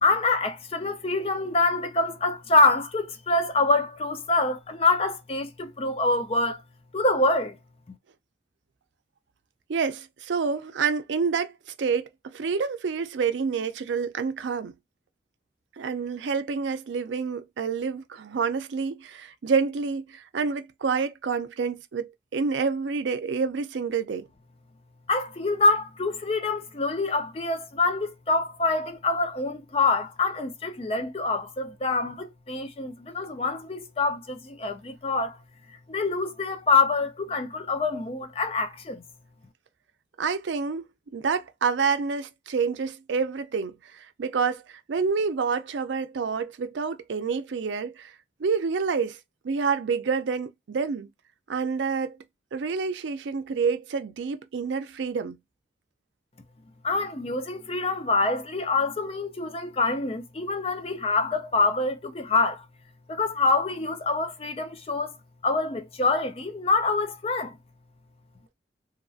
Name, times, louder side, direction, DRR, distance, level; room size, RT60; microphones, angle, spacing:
voice 1, 0.0-6.6 6.9-7.6 25.1-35.4 35.9-39.0 56.8-62.6 63.1-65.1 65.4-67.6, left 3 dB, 30° left, 0.5 m, -25 dB
voice 2, 9.7-11.5 11.8-14.7 15.8-24.3 40.2-40.8 41.1-48.1 48.4-49.2 49.4-51.1 51.5-52.2 52.5-55.4, right 5 dB, 85° right, 0.4 m, -28 dB
2.9 x 2.5 x 2.4 m
head